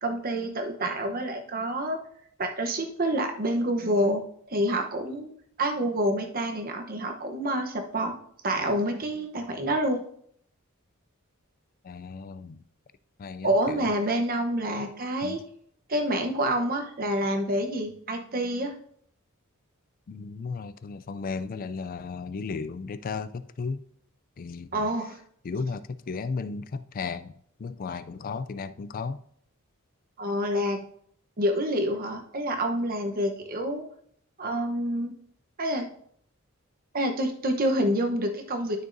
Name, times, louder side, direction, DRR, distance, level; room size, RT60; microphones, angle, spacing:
voice 1, 0.0-2.0 2.4-4.2 4.5-5.3 5.6-8.1 8.4-10.0 13.4-15.4 15.9-18.7 24.7-25.2 30.2-30.9 31.4-33.8 34.4-35.1 35.6-35.9 36.9-38.9, right 1 dB, 40° right, 0.9 m, -27 dB
voice 2, 11.8-12.6 13.2-13.9 15.2-15.4 20.1-23.8 24.4-24.9 25.4-29.2, left 4 dB, 40° left, 0.3 m, -35 dB
12.0 x 6.3 x 2.6 m
head